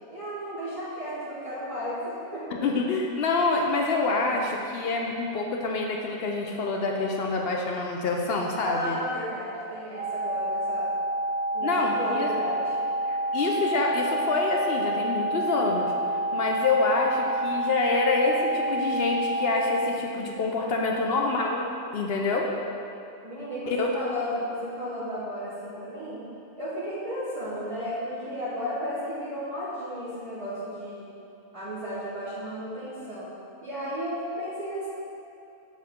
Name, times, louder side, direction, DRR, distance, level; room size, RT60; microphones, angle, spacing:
voice 1, 0.1-2.6 8.6-10.9 11.5-12.7 20.6-21.2 23.2-26.2 26.6-31.1 31.5-33.3 33.6-34.9, equal, 25° right, -12 dB, 1.2 m, -34 dB
voice 2, 2.6-9.0 11.6-12.3 13.1-15.9 16.3-21.6 21.9-22.5 23.7-23.9, left 3 dB, 60° left, 0 dB, 0.7 m, -26 dB
sound 1, 9.9-19.9, right 1 dB, 50° right, 1.1 m, -28 dB
7.2 x 4.6 x 3.6 m, 2.8 s
omnidirectional pair, 1.5 m